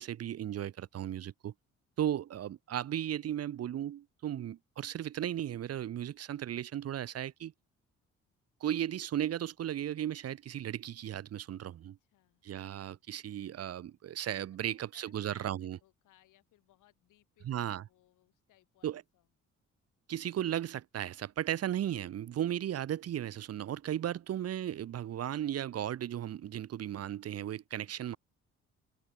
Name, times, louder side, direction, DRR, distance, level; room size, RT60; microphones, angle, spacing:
voice 1, 0.0-1.5 2.0-7.5 8.6-12.0 12.4-15.8 17.4-17.8 18.8-19.0 20.1-28.2, right 11 dB, 55° right, 0.8 m, -35 dB
voice 2, 11.8-12.4 14.3-19.3, left 15 dB, 90° left, 4.6 m, -67 dB
cardioid pair, 90°, 30 cm